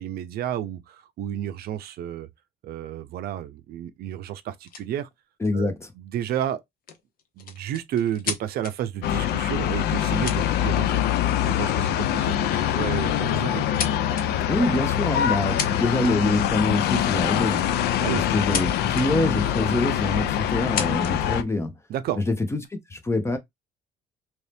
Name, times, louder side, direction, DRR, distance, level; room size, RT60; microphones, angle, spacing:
voice 1, 0.0-2.3 2.6-5.1 5.5-5.7 6.0-6.6 7.4-13.6 18.0-18.2 21.9-22.2, right 11 dB, 65° right, 0.5 m, -31 dB
sound 1, 4.7-4.9 6.8-8.7 9.8-9.9 10.2-11.0 11.4-11.6 12.6-12.8 13.2-14.3 15.3-15.4 15.6-16.3 17.8-18.6 18.9-19.1 19.7-19.8 20.5-21.2 22.0-22.7, left 6 dB, 55° left, 0.8 m, -33 dB
voice 2, 5.4-5.8 14.5-17.7 18.1-21.7 22.3-23.4, left 2 dB, 15° left, 0.7 m, -25 dB
sound 2, 9.0-21.4, left 11 dB, 75° left, 0.4 m, -24 dB
3.0 x 2.7 x 3.3 m
cardioid pair, 110°, 17 cm